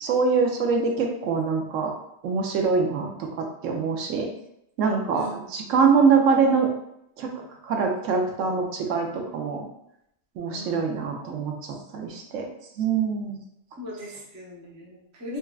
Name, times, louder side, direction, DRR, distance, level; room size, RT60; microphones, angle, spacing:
voice 1, 0.0-1.9 2.2-3.1 3.6-4.3 4.8-6.7 7.2-7.3 7.6-9.6 10.4-11.5 11.9-12.4 12.8-13.4, right 5 dB, 80° right, 2 dB, 1.0 m, -23 dB
voice 2, 13.8-15.4, left 1 dB, 25° right, -3 dB, 0.3 m, -38 dB
4.2 x 2.3 x 2.3 m, 0.79 s
omnidirectional pair, 1.3 m